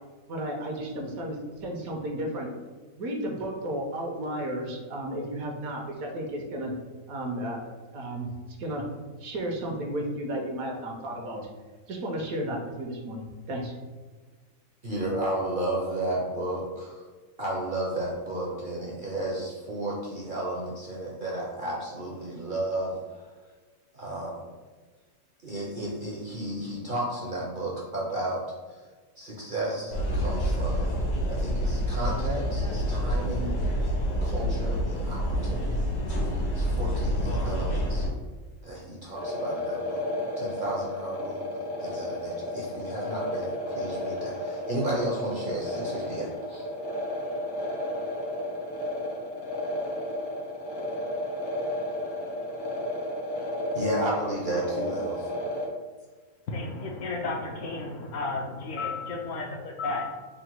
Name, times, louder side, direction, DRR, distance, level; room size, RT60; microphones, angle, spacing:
voice 1, 0.3-2.5 3.0-6.7 7.1-8.3 8.6-8.8 9.2-11.5 11.9-13.7, right 1 dB, 75° right, 1 dB, 1.1 m, -33 dB
voice 2, 14.8-17.0 17.4-23.2 23.9-24.4 25.4-28.4 29.2-30.9 31.3-33.6 34.2-35.9 36.5-38.1 38.6-40.1 40.4-46.6 53.7-55.3, right 1 dB, 50° right, -4 dB, 0.6 m, -33 dB
sound 1, 29.9-38.1, equal, 90° left, 1.6 m, -27 dB
sound 2, 39.1-55.7, left 1 dB, 35° left, 0.4 m, -33 dB
voice 3, 56.5-60.3, left 3 dB, 70° left, 1 dB, 0.9 m, -33 dB
3.8 x 2.1 x 4.5 m, 1.4 s
omnidirectional pair, 1.6 m